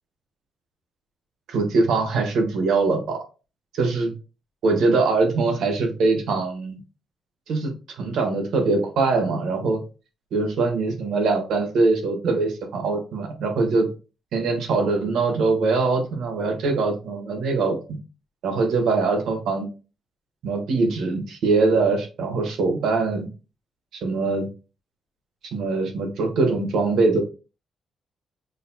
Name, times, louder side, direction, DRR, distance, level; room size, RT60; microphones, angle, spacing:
voice 1, 1.5-3.2 3.7-4.1 4.6-6.8 7.5-9.8 10.3-13.9 14.3-17.8 18.4-19.7 20.4-23.3 24.0-24.5 25.5-27.2, right 3 dB, 80° right, 4 dB, 1.2 m, -22 dB
6.5 x 2.7 x 2.2 m, 0.32 s
cardioid pair, 110°, 0 cm